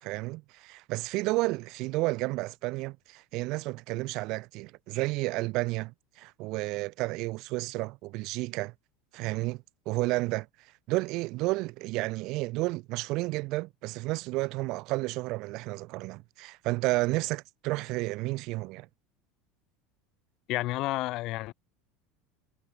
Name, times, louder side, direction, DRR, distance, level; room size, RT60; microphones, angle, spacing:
voice 1, 0.0-8.7 9.1-10.5 10.9-18.9, right 22 dB, 60° right, 0.9 m, -31 dB
voice 2, 20.5-21.5, left 18 dB, 55° left, 5.8 m, -30 dB
hypercardioid pair, 80°, 0 cm